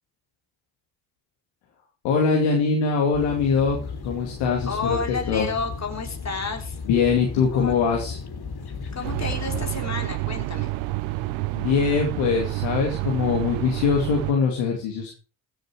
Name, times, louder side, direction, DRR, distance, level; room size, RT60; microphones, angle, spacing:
voice 1, 2.0-3.8 4.0-5.0 5.3-5.5 6.8-8.2 11.5-15.1, left 5 dB, 85° left, 0 dB, 2.6 m, -22 dB
sound 1, 3.1-9.7, left 4 dB, 55° left, 3.3 m, -35 dB
voice 2, 4.7-6.8 7.5-7.7 8.9-10.8, left 4 dB, 35° left, 4 dB, 3.8 m, -31 dB
sound 2, 9.0-14.3, right 19 dB, 90° right, 0.9 m, -29 dB
16.0 x 7.8 x 4.7 m, 0.34 s
supercardioid pair, 65°, 45 cm